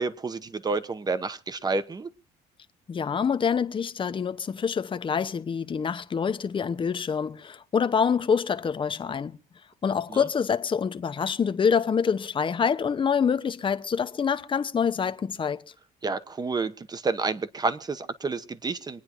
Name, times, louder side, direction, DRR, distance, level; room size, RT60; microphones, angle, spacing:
voice 1, 0.0-2.1 10.1-10.2 16.0-19.0, right 3 dB, 25° right, 1.0 m, -29 dB
voice 2, 2.9-9.4 9.8-15.6, left 6 dB, 30° left, 0.8 m, -26 dB
26.0 x 9.5 x 3.0 m
cardioid pair, 110°, 17 cm